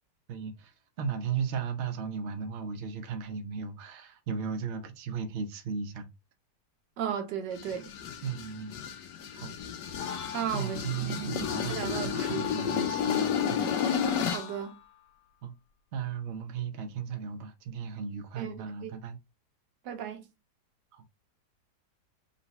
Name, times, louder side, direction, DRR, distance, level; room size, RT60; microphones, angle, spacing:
voice 1, 0.3-6.1 8.2-8.8 9.3-9.5 10.5-13.7 15.4-15.5 15.9-19.2 20.9-21.0, right 6 dB, 55° right, 0.8 m, -36 dB
voice 2, 7.0-7.9 10.3-12.5 14.3-14.7 18.4-18.5 18.8-19.0 19.8-20.3, right 9 dB, 85° right, 1.5 m, -35 dB
sound 1, 7.6-14.6, left 8 dB, 85° left, 1.3 m, -32 dB
4.0 x 2.3 x 4.0 m
omnidirectional pair, 1.8 m